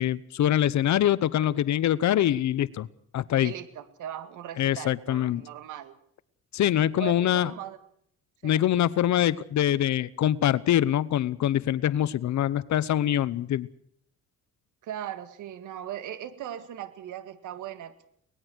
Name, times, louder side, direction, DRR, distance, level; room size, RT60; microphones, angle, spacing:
voice 1, 0.0-2.9 3.1-3.5 4.6-5.4 6.5-7.5 8.4-13.7, left 11 dB, 65° left, 17 dB, 0.9 m, -24 dB
voice 2, 3.4-6.0 7.0-7.8 8.4-8.6 14.8-17.9, right 11 dB, 85° right, 12 dB, 2.0 m, -38 dB
24.0 x 19.5 x 6.3 m, 0.66 s
cardioid pair, 90°, 30 cm